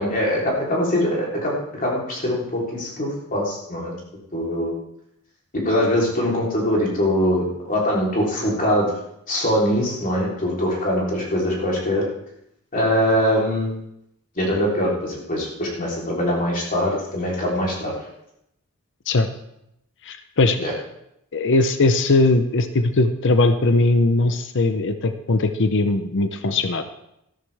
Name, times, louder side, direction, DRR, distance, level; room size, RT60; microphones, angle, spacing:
voice 1, 0.0-3.9 4.3-4.7 5.6-8.9 9.3-12.0 12.7-13.7 14.4-17.9 20.6-20.7, equal, 40° left, -4 dB, 3.6 m, -22 dB
voice 2, 20.0-20.7 21.3-26.8, left 2 dB, 55° left, 9 dB, 0.7 m, -19 dB
13.5 x 12.5 x 3.5 m, 0.79 s
head